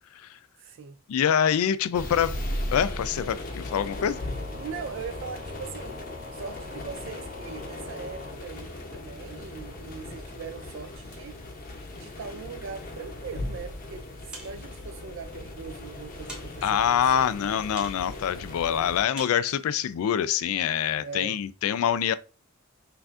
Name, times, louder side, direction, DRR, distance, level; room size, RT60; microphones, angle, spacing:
voice 1, 0.6-1.0 4.5-6.0 6.3-17.4 21.0-21.4, right 5 dB, 60° right, 0.3 m, -41 dB
voice 2, 1.1-2.3 2.7-4.2 16.6-22.1, left 9 dB, 80° left, 0.3 m, -25 dB
sound 1, 1.9-19.0, left 1 dB, 40° left, 0.7 m, -38 dB
sound 2, 3.6-8.4, left 3 dB, 75° right, 1.5 m, -44 dB
sound 3, 14.3-14.9 15.6-15.7 16.3-16.9 17.8-18.3 19.2-19.7, right 1 dB, 5° right, 0.9 m, -44 dB
5.7 x 2.5 x 2.4 m
head